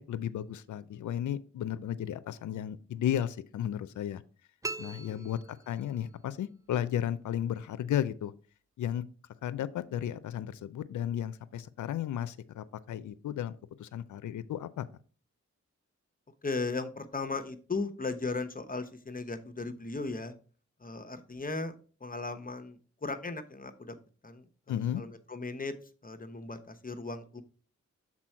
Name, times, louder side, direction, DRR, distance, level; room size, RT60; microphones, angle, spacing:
voice 1, 0.0-4.2 4.8-8.3 8.8-9.0 9.4-14.9 24.7-25.0, left 10 dB, 80° left, 15 dB, 0.5 m, -34 dB
sound 1, 4.6-6.2, right 3 dB, 10° right, 0.3 m, -41 dB
voice 2, 16.4-20.3 20.8-21.7 22.0-23.9 24.2-25.7 26.0-27.4, left 3 dB, 30° left, 8 dB, 0.9 m, -37 dB
6.1 x 4.3 x 4.4 m, 0.40 s
cardioid pair, 50°, 29 cm